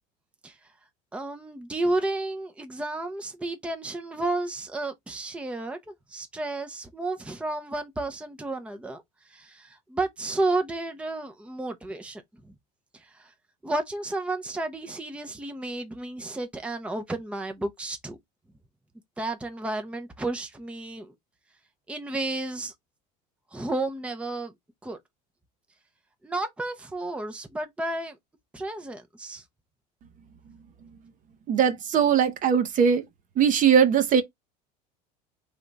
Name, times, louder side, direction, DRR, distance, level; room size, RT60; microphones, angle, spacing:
voice 1, 1.1-9.0 9.3-12.5 13.1-13.3 13.6-18.2 19.2-21.1 21.9-22.7 23.5-24.5 24.8-25.0 26.2-28.2 28.5-29.4, right 2 dB, 5° right, 0.7 m, -32 dB
voice 2, 31.5-33.0 33.4-34.2, right 7 dB, 40° right, 0.8 m, -20 dB
3.6 x 3.5 x 4.0 m
supercardioid pair, 110°, 20 cm